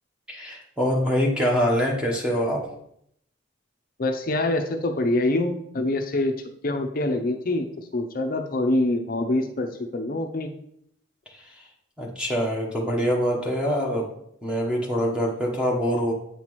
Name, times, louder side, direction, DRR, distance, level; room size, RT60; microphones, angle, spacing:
voice 1, 0.3-2.6 11.3-11.5 12.0-14.1 14.4-16.1, equal, 5° right, -2 dB, 0.9 m, -24 dB
voice 2, 4.0-6.3 6.6-7.7 7.9-10.5, left 2 dB, 45° left, 5 dB, 0.6 m, -25 dB
8.4 x 5.8 x 3.0 m, 0.72 s
head